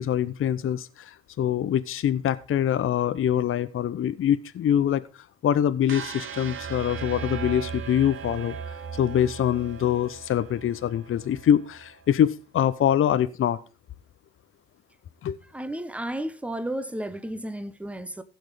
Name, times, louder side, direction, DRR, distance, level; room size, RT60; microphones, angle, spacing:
voice 1, 0.0-8.6 9.0-13.6 15.2-15.4, left 10 dB, 45° left, 0.8 m, -24 dB
sound 1, 5.9-12.0, right 6 dB, 45° right, 1.1 m, -37 dB
voice 2, 15.5-18.2, right 1 dB, 5° right, 1.1 m, -33 dB
15.5 x 6.3 x 4.9 m
hypercardioid pair, 50°, 29 cm